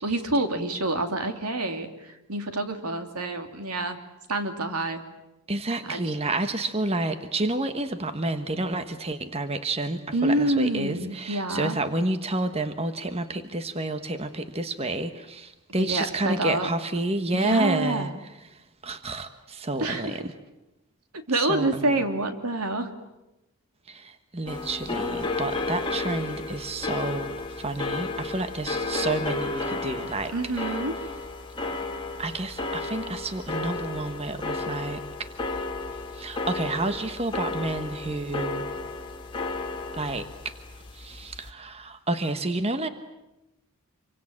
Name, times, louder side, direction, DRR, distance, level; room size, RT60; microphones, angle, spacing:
voice 1, 0.0-4.0 4.3-5.0 5.9-6.1 10.1-11.8 15.8-16.7 17.3-18.1 19.8-20.2 21.1-23.0 30.3-30.9, right 2 dB, 90° right, 6 dB, 2.9 m, -27 dB
voice 2, 5.5-18.1 18.8-20.2 21.3-22.0 23.9-30.8 32.2-35.6 36.1-38.7 39.9-40.3 40.9-42.9, right 2 dB, 25° right, 9 dB, 1.3 m, -30 dB
sound 1, 24.5-41.5, left 3 dB, 20° left, 2.7 m, -33 dB
27.5 x 24.0 x 8.7 m, 0.97 s
head